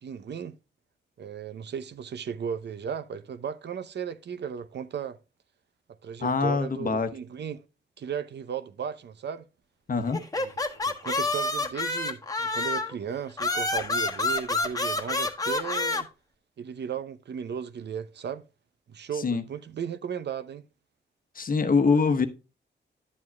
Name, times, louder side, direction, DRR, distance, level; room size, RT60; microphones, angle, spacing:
voice 1, 0.0-0.6 1.2-5.2 6.0-7.6 8.0-9.4 10.4-16.1 16.6-18.4 18.9-20.6, right 7 dB, 65° right, 0.7 m, -35 dB
voice 2, 6.2-7.1 9.9-10.2 19.2-19.4 21.3-22.3, left 4 dB, 45° left, 1.0 m, -24 dB
sound 1, 10.1-13.0 13.4-16.0, left 2 dB, 20° left, 1.2 m, -28 dB
11.0 x 7.3 x 2.2 m
cardioid pair, 80°, 19 cm